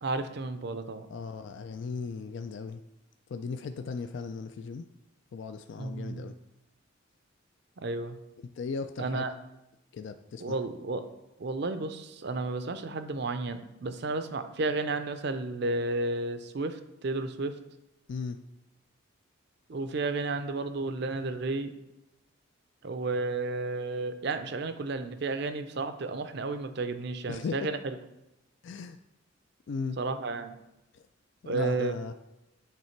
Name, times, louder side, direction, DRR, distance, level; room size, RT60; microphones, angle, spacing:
voice 1, 0.0-1.1 5.8-6.3 7.8-8.2 9.0-9.3 10.4-11.1 11.4-17.6 19.7-21.7 22.8-27.9 30.0-30.5 31.5-32.0, right 3 dB, 55° right, 10 dB, 0.5 m, -32 dB
voice 2, 1.1-2.8 3.3-4.8 5.3-6.3 8.6-9.2 9.9-10.6 18.1-18.4 27.3-27.7 28.6-29.0 29.7-30.0 30.9-31.0 31.4-32.1, left 5 dB, 60° left, 8 dB, 0.3 m, -37 dB
9.2 x 3.2 x 4.5 m, 0.92 s
head